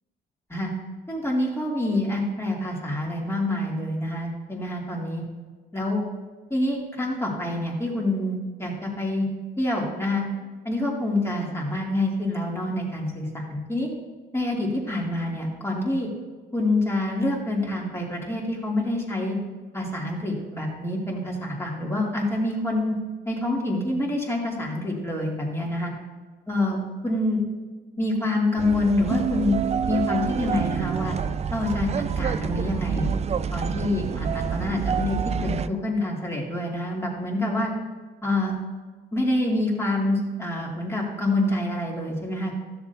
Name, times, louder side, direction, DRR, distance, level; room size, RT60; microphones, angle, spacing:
voice 1, 1.1-5.2 5.7-6.0 6.5-9.3 9.6-10.3 10.6-13.9 14.3-16.1 16.5-19.4 19.7-23.0 23.3-25.9 26.5-26.8 27.0-27.4 28.0-29.6 29.9-31.2 31.5-31.9 32.2-33.1 33.5-37.7 38.2-38.5 39.1-42.5, left 1 dB, 15° left, -2 dB, 2.6 m, -26 dB
sound 1, 28.6-35.7, right 7 dB, 35° right, 0.4 m, -27 dB
13.0 x 7.0 x 2.7 m, 1.4 s
cardioid pair, 90°, 20 cm